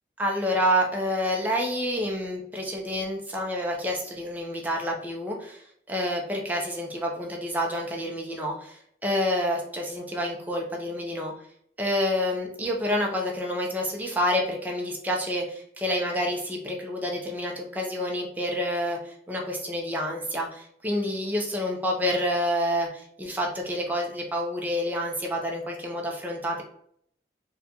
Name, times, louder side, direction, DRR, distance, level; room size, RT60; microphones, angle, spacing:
voice 1, 0.2-11.3 11.8-26.6, equal, 10° right, 0 dB, 0.5 m, -28 dB
4.0 x 2.2 x 2.7 m, 0.66 s
head